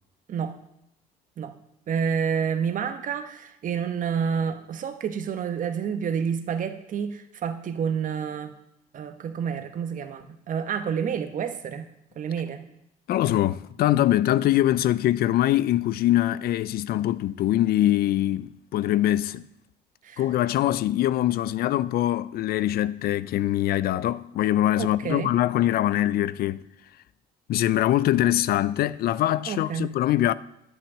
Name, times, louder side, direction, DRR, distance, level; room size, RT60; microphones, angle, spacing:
voice 1, 1.9-8.5 8.9-11.9 12.2-12.7 20.0-20.2 24.8-25.3 29.5-29.9, right 7 dB, 50° right, 1.2 m, -29 dB
voice 2, 13.1-19.5 20.2-26.6 27.5-30.3, left 13 dB, 65° left, 0.5 m, -23 dB
10.5 x 6.0 x 8.4 m
cardioid pair, 110°, 17 cm